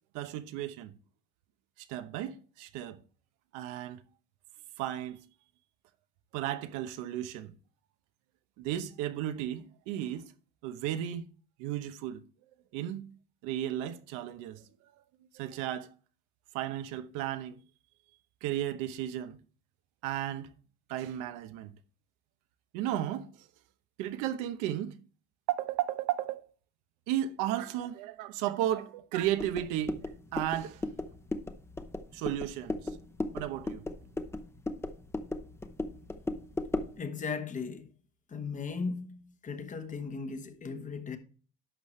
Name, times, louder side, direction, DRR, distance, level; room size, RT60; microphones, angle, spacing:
voice 1, 0.1-0.9 1.9-3.0 3.5-4.0 4.8-5.2 6.3-7.5 8.6-10.3 10.6-11.3 11.6-12.2 12.7-13.1 13.4-14.6 15.3-15.9 16.5-17.6 18.4-19.4 20.0-20.5 20.9-21.7 22.7-23.5 24.0-25.0 25.5-26.5 27.1-30.0 30.3-30.8 32.1-32.9 33.3-33.8, right 12 dB, 85° right, 1.0 m, -34 dB
sound 1, 29.4-37.0, left 2 dB, 10° left, 0.7 m, -37 dB
voice 2, 37.0-37.9 38.3-41.2, left 5 dB, 25° left, 1.1 m, -37 dB
11.0 x 6.6 x 3.2 m
cardioid pair, 145°, 30 cm